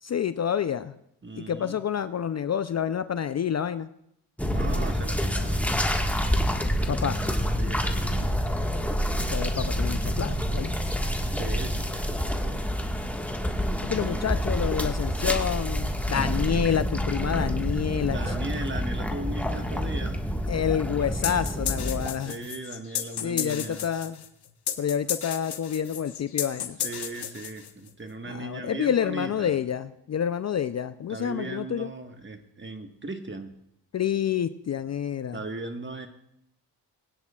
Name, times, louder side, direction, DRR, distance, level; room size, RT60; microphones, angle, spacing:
voice 1, 0.0-1.0 1.4-3.9 6.9-7.2 9.1-10.9 13.8-18.3 20.5-22.4 23.2-24.2 24.8-26.8 28.2-31.9 33.9-35.4, left 8 dB, 40° left, 12 dB, 0.5 m, -28 dB
voice 2, 1.2-1.8 4.5-5.8 7.6-8.7 11.3-12.7 14.0-14.3 18.0-20.2 22.2-23.9 26.8-29.6 31.1-33.5 35.3-36.1, right 2 dB, 25° right, 6 dB, 1.5 m, -38 dB
sound 1, 4.4-22.1, equal, 5° left, 1.6 m, -27 dB
sound 2, 21.2-27.9, left 9 dB, 60° left, 1.2 m, -33 dB
20.5 x 9.7 x 2.4 m, 0.76 s
supercardioid pair, 55°, 44 cm